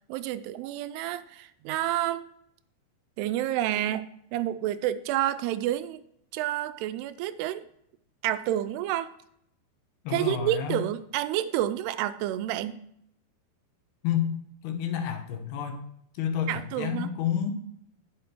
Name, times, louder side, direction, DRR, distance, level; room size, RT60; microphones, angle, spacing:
voice 1, 0.1-2.2 3.2-4.1 4.3-6.0 6.3-7.7 8.2-9.1 10.1-12.8 16.5-17.1, right 13 dB, 85° right, 12 dB, 2.5 m, -29 dB
voice 2, 10.0-10.8 14.0-14.3 14.6-15.8 16.1-17.5, left 9 dB, 75° left, 6 dB, 2.8 m, -29 dB
8.5 x 7.8 x 4.4 m, 0.72 s
omnidirectional pair, 4.7 m